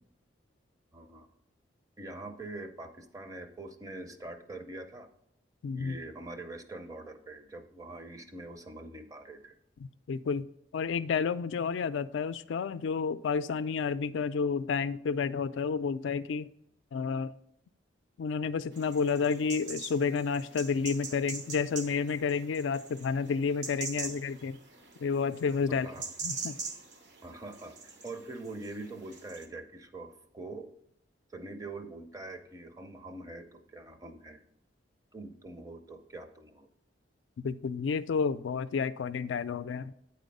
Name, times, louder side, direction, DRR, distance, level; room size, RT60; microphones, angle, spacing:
voice 1, 0.9-1.3 2.0-5.1 5.7-9.6 24.0-24.2 25.7-26.1 27.2-30.7 31.3-34.4 35.1-36.7, right 2 dB, 20° right, 7 dB, 0.5 m, -44 dB
voice 2, 5.6-6.0 10.1-10.5 10.7-16.5 16.9-17.3 18.2-24.6 25.0-25.9 26.2-26.6 37.4-39.9, left 5 dB, 85° left, 13 dB, 0.3 m, -30 dB
sound 1, 18.7-29.5, right 4 dB, 65° right, 1.0 m, -43 dB
9.0 x 4.3 x 5.3 m, 0.74 s
head